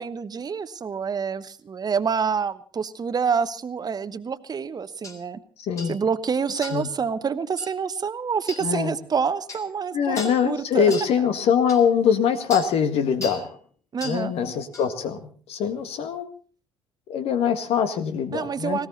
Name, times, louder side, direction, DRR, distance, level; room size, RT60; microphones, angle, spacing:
voice 1, 0.0-5.4 5.9-10.2 10.4-10.9 13.9-14.3 18.3-18.9, right 6 dB, 35° right, 14 dB, 1.1 m, -27 dB
sound 1, 5.0-5.2 5.8-6.0 6.6-6.9 7.6-7.7 8.5-8.7 9.5-9.7 10.2-10.4 10.9-11.1 11.7-11.8 12.5-12.7 13.2-13.5 14.0-14.2 14.7-14.9, left 3 dB, 25° left, 4.0 m, -36 dB
voice 2, 5.6-6.0 6.7-6.9 8.6-8.9 9.9-13.6 14.0-16.3 17.1-18.8, left 7 dB, 55° left, 9 dB, 1.8 m, -23 dB
19.0 x 17.0 x 4.1 m, 0.43 s
figure-of-eight pair, 50°, 12 cm